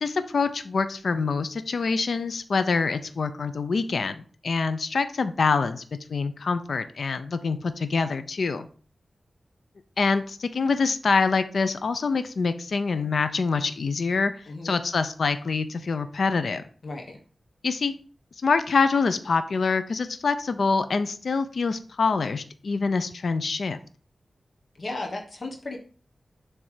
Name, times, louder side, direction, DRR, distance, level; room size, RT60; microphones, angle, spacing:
voice 1, 0.0-5.8 6.1-8.7 10.0-14.3 14.6-16.6 17.6-17.9 18.4-23.8, left 4 dB, 70° left, 11 dB, 0.5 m, -25 dB
voice 2, 14.5-14.8 16.8-17.2 24.8-25.8, left 2 dB, 55° left, 2 dB, 1.3 m, -35 dB
7.1 x 3.3 x 4.9 m, 0.41 s
wide cardioid pair, 80°, 0 cm